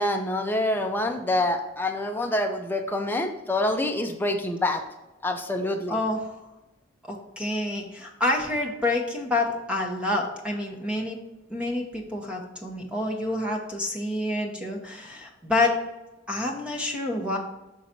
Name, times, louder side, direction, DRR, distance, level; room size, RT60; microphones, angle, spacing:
voice 1, 0.0-4.8 5.2-6.0, left 1 dB, 10° left, 4 dB, 0.5 m, -26 dB
voice 2, 5.9-6.3 7.1-11.2 11.5-15.7 16.3-17.4, left 2 dB, 5° right, 0 dB, 1.0 m, -28 dB
6.5 x 3.9 x 4.5 m, 0.99 s
head